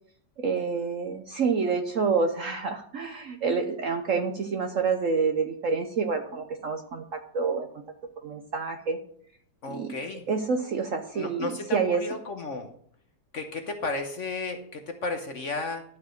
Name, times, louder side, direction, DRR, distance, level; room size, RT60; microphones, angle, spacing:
voice 1, 0.4-7.7 8.2-9.0 9.7-10.0 10.3-12.0, right 5 dB, 60° right, 6 dB, 0.9 m, -28 dB
voice 2, 9.6-10.3 11.1-12.7 13.3-15.8, left 3 dB, 50° left, 6 dB, 1.0 m, -33 dB
12.0 x 4.9 x 6.4 m, 0.63 s
omnidirectional pair, 2.0 m